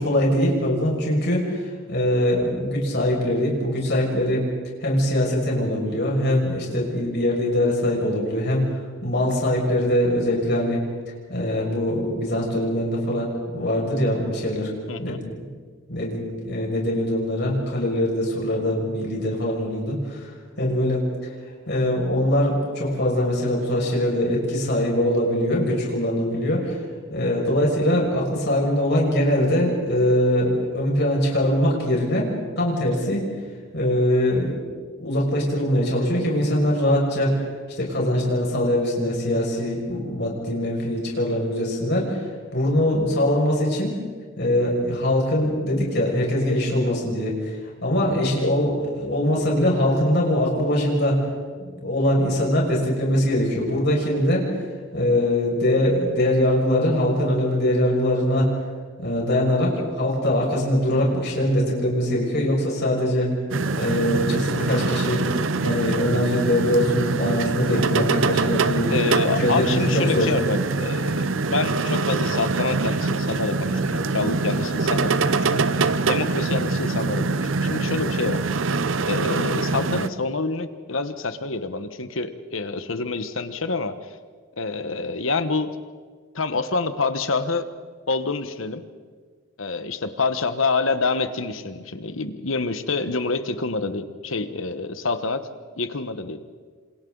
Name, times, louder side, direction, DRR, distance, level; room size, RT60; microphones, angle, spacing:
voice 1, 0.0-4.4 4.8-10.8 11.3-14.7 15.0-15.2 15.9-20.3 20.6-21.3 21.7-26.8 27.1-32.3 32.6-33.2 33.7-34.6 35.0-37.3 37.8-43.9 44.4-47.6 47.8-51.2 51.6-54.5 54.9-58.5 59.0-63.3 63.7-65.2 65.6-69.0 69.4-70.3, left 1 dB, 60° left, -2 dB, 6.2 m, -22 dB
voice 2, 14.9-15.2 48.4-48.5 68.9-78.4 79.1-83.9 84.6-85.7 86.3-87.7 88.1-88.8 89.6-95.5 95.8-96.4, left 3 dB, 90° left, 10 dB, 1.3 m, -27 dB
sound 1, 63.5-80.1, right 3 dB, 75° right, 0.8 m, -24 dB
28.0 x 27.0 x 4.0 m, 1.6 s
head